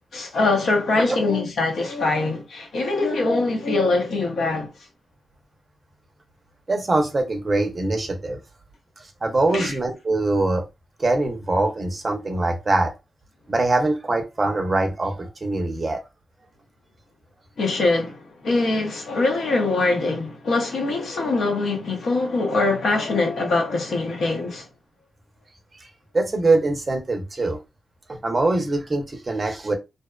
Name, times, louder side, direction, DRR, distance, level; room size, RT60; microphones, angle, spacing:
voice 1, 0.1-4.7 9.5-9.7 17.6-24.6, left 3 dB, 75° left, 0.8 m, -23 dB
voice 2, 6.7-8.4 9.2-10.6 11.0-12.9 13.5-16.0 26.1-27.6 28.1-29.7, right 2 dB, 30° right, 0.5 m, -23 dB
2.7 x 2.1 x 2.2 m
wide cardioid pair, 145°, 0 cm